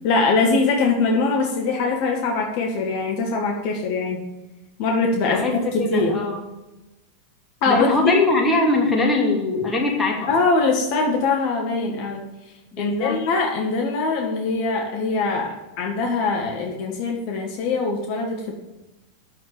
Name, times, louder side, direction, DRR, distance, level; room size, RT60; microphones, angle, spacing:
voice 1, 0.0-4.2 4.8-5.4 5.7-6.2 7.6-7.9 10.3-18.6, left 3 dB, 45° left, 0 dB, 1.7 m, -22 dB
voice 2, 5.2-6.4 7.7-10.3 12.7-13.2, left 2 dB, 10° left, -1 dB, 2.7 m, -22 dB
9.2 x 7.1 x 7.2 m, 1.0 s
figure-of-eight pair, 90°, 0 cm